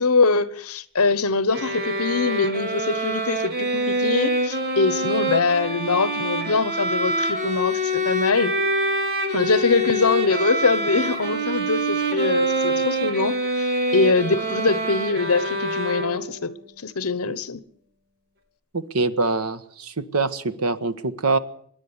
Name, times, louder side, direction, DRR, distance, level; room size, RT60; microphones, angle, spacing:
voice 1, 0.0-8.5 9.3-13.7 13.9-16.5 16.8-17.6, left 4 dB, 75° left, 1.2 m, -23 dB
sound 1, 1.5-16.5, right 1 dB, 45° right, 3.2 m, -25 dB
voice 2, 18.7-21.4, right 3 dB, 80° right, 1.5 m, -24 dB
25.5 x 11.0 x 9.9 m
head